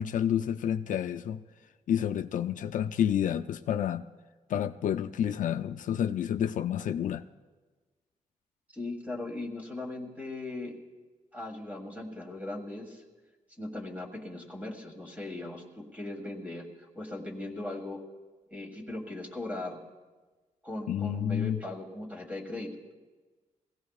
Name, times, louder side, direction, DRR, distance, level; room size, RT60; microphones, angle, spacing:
voice 1, 0.0-1.4 1.9-4.1 4.5-7.2 20.9-21.6, left 9 dB, 70° left, 8 dB, 0.4 m, -29 dB
voice 2, 8.7-10.8 11.3-13.0 13.6-18.0 18.5-19.8 20.6-22.9, left 2 dB, 10° right, 2 dB, 1.8 m, -39 dB
23.0 x 16.5 x 2.4 m, 1.3 s
wide cardioid pair, 160°, 14 cm